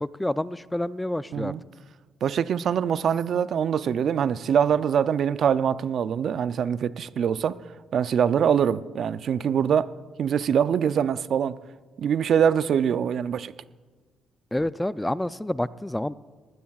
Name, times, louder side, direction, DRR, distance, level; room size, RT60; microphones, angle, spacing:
voice 1, 0.0-1.5 14.5-16.1, left 1 dB, 10° left, 0.3 m, -28 dB
voice 2, 2.2-7.6 7.9-9.9 10.2-11.6 12.0-13.5, right 8 dB, 60° right, 0.4 m, -23 dB
20.0 x 15.5 x 2.4 m
cardioid pair, 90°, 0 cm